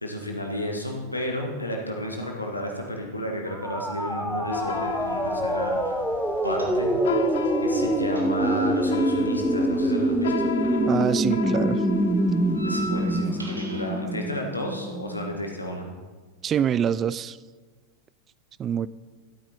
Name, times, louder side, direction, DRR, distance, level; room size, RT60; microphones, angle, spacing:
voice 1, 0.0-6.0 6.4-6.9 7.6-10.6 12.6-15.9, left 1 dB, 85° left, 2 dB, 1.5 m, -32 dB
sound 1, 3.5-15.3, right 1 dB, ahead, 0.7 m, -25 dB
sound 2, 4.5-13.2, left 7 dB, 60° left, 0.5 m, -35 dB
sound 3, 6.4-7.2 7.5-10.9 11.1-14.0, right 1 dB, 80° right, 1.5 m, -41 dB
voice 2, 10.8-11.8 16.4-17.4 18.6-18.9, right 9 dB, 25° right, 18 dB, 0.3 m, -25 dB
12.5 x 8.6 x 4.2 m, 1.4 s
figure-of-eight pair, 90°, 0 cm